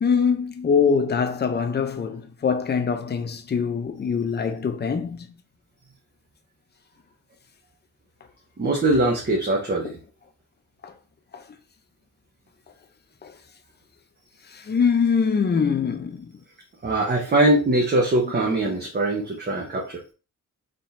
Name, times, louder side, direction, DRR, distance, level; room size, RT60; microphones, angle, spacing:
voice 1, 0.0-5.3 10.8-10.9 11.3-11.4 13.2-13.3 14.5-16.3, left 6 dB, 35° left, 0.6 m, -23 dB
voice 2, 8.6-10.0 16.8-20.0, right 2 dB, 30° right, 1.0 m, -22 dB
4.4 x 3.8 x 2.6 m
wide cardioid pair, 135°, 31 cm